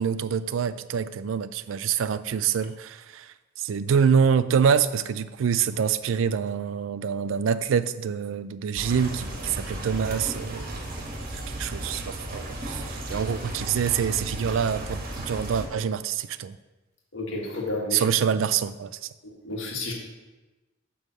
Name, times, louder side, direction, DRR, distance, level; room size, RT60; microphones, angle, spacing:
voice 1, 0.0-11.1 11.3-16.6 17.9-19.1, right 7 dB, 75° right, 0.4 m, -26 dB
sound 1, 8.8-15.7, right 1 dB, 45° right, 1.3 m, -35 dB
voice 2, 17.1-18.1 19.2-19.9, left 2 dB, 75° left, 1.7 m, -31 dB
9.2 x 3.5 x 6.3 m
head